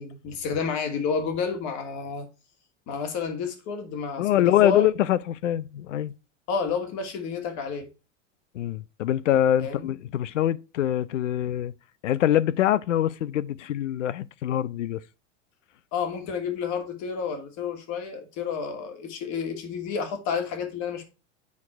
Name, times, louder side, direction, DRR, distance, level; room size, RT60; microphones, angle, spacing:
voice 1, 0.0-2.3 2.9-4.3 4.6-4.9 6.5-7.9 9.6-9.9 15.9-21.1, left 6 dB, 50° left, 2.7 m, -30 dB
voice 2, 4.2-6.1 8.5-11.7 12.0-15.0, left 12 dB, 85° left, 0.7 m, -24 dB
8.3 x 4.9 x 4.6 m
hypercardioid pair, 110°, 36 cm